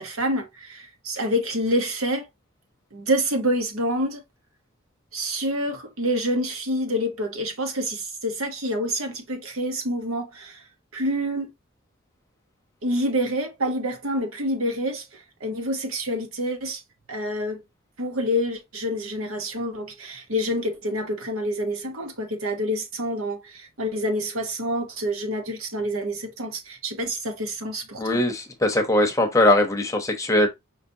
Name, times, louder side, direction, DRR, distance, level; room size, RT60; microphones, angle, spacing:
voice 1, 0.0-2.3 2.9-4.2 5.1-10.6 10.9-11.5 12.8-16.8 17.1-17.6 18.0-28.2, equal, 80° right, 1.2 m, -27 dB
voice 2, 28.0-30.5, left 1 dB, 15° left, 0.9 m, -20 dB
5.8 x 3.2 x 2.7 m
head